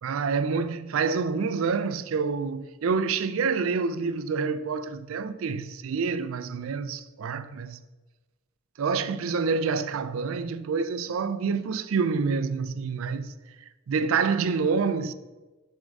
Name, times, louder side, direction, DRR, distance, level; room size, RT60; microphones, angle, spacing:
voice 1, 0.0-7.8 8.8-13.3 13.9-15.1, right 5 dB, 80° right, 0.4 m, -27 dB
6.6 x 3.6 x 5.2 m
head